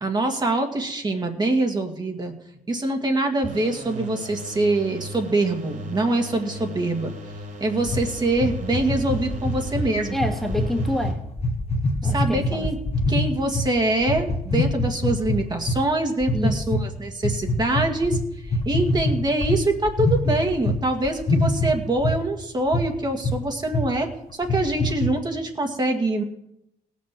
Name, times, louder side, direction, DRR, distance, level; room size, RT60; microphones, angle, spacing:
voice 1, 0.0-2.3 2.7-7.1 7.6-10.2 12.0-12.8 13.1-26.2, right 2 dB, 30° right, 3 dB, 1.8 m, -24 dB
sound 1, 3.4-11.1, equal, 60° right, 4.0 m, -38 dB
sound 2, 7.9-13.7 14.0-15.8 16.2-16.8 17.2-20.8 21.0-22.2 22.7-22.9 23.2-23.4 23.7-23.9 24.3-25.1, left 1 dB, 40° left, 1.6 m, -24 dB
voice 2, 10.1-11.2 12.0-12.7 16.3-16.6, equal, ahead, 2 dB, 1.8 m, -27 dB
17.5 x 6.4 x 7.4 m, 0.81 s
cardioid pair, 105°, 15 cm